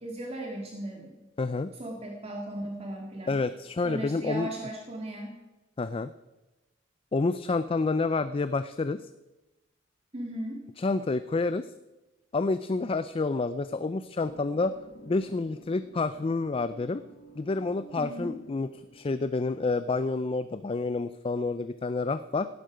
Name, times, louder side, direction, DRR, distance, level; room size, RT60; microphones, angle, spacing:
voice 1, 0.0-1.2 1.8-3.4 3.8-5.4 10.1-10.6 18.0-18.3, right 1 dB, 30° right, 0 dB, 1.9 m, -37 dB
voice 2, 1.4-1.7 3.3-4.5 5.8-6.1 7.1-9.0 10.8-11.7 12.3-14.8 15.1-17.0 17.4-22.5, left 3 dB, 25° left, 13 dB, 0.4 m, -29 dB
sound 1, 14.2-19.4, right 2 dB, 80° left, 1.5 m, -51 dB
17.0 x 12.0 x 5.1 m, 1.1 s
head